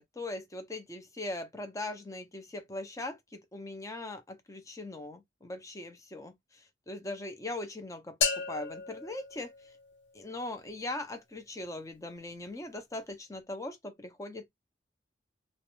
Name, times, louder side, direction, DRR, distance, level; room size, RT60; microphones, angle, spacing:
voice 1, 0.0-9.5 10.1-14.5, left 2 dB, 20° left, 0.6 m, -40 dB
sound 1, 8.2-10.2, left 5 dB, 75° left, 0.7 m, -34 dB
2.5 x 2.0 x 3.0 m
head